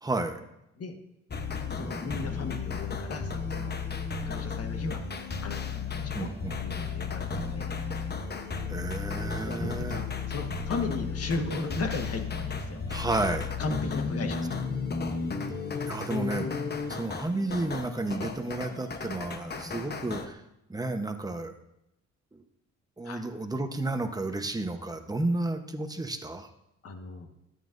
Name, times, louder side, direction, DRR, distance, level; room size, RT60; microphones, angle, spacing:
voice 1, 0.0-0.4 6.1-6.6 8.7-10.0 12.9-13.5 15.9-16.5 16.9-20.4 20.7-21.5 22.3-22.4 23.0-26.5, right 2 dB, 10° right, 6 dB, 1.0 m, -32 dB
sound 1, 1.3-20.3, left 5 dB, 35° left, 1.0 m, -34 dB
voice 2, 1.7-3.8 4.2-5.0 5.4-6.3 6.6-7.8 9.4-12.8 13.6-14.5 23.0-23.2 26.8-27.3, left 3 dB, 50° left, 5 dB, 1.5 m, -36 dB
13.0 x 9.4 x 2.6 m, 0.85 s
cardioid pair, 90°, 30 cm